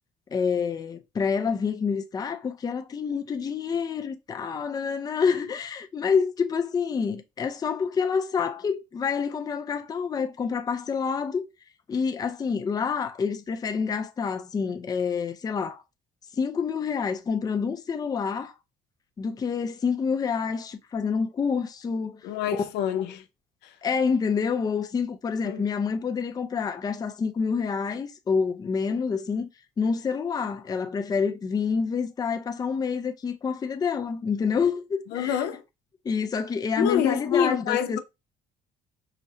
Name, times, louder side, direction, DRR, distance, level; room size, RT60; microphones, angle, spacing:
voice 1, 0.3-11.4 11.9-15.8 16.3-18.5 19.2-22.2 22.5-22.7 23.8-29.5 29.8-35.4 36.0-38.0, left 5 dB, 20° left, 0.4 m, -27 dB
voice 2, 22.2-23.2 23.6-23.7 25.4-25.7 35.1-35.6 36.8-38.0, left 9 dB, 80° left, 0.5 m, -26 dB
4.9 x 2.0 x 2.6 m
cardioid pair, 110°, 17 cm